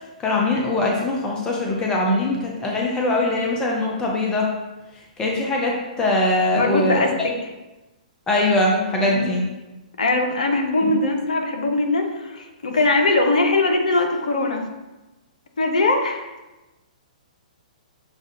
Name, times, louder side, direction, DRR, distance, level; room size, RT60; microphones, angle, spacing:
voice 1, 0.2-4.5 5.2-7.1 8.3-9.4 10.8-10.9, left 2 dB, 15° left, -1 dB, 0.7 m, -22 dB
voice 2, 6.5-7.3 9.0-9.2 10.0-14.6 15.6-16.3, left 2 dB, 65° left, 3 dB, 0.8 m, -21 dB
6.7 x 2.4 x 2.7 m, 1.1 s
figure-of-eight pair, 120°, 4 cm